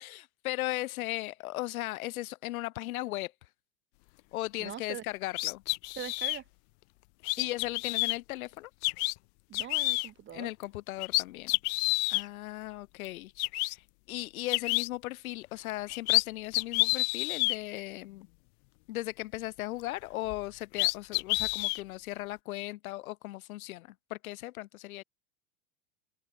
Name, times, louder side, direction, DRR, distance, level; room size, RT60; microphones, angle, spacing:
voice 1, 0.0-3.3 4.3-5.6 7.4-8.7 10.3-11.5 12.1-13.3 13.6-18.3 18.9-25.0, left 17 dB, 80° left, 2.3 m, -37 dB
voice 2, 4.6-5.0 6.0-6.4 7.4-7.5 9.5-10.5, right 10 dB, 25° right, 2.8 m, -42 dB
sound 1, 5.3-6.4 7.2-8.2 8.8-9.1 9.5-10.1 10.6-10.7 11.0-12.2 13.0-13.1 13.4-13.7 14.5-14.9 15.7-16.2 16.5-17.6 20.3-20.4 20.7-21.8, left 32 dB, 50° left, 0.6 m, -29 dB
open air
supercardioid pair, 145°, 42 cm